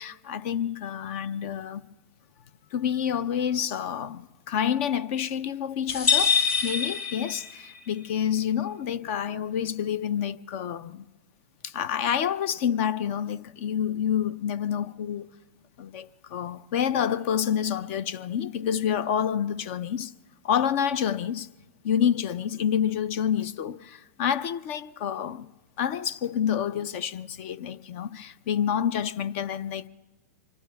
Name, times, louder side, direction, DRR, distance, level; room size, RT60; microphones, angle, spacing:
voice 1, 0.0-1.8 2.7-11.0 11.6-15.3 15.8-20.1 20.4-21.5 21.8-25.5 25.8-29.9, left 9 dB, 55° left, 0.5 m, -28 dB
sound 1, 5.9-7.8, left 6 dB, 80° left, 5.2 m, -25 dB
25.5 x 24.5 x 2.3 m
hypercardioid pair, 115°, 8 cm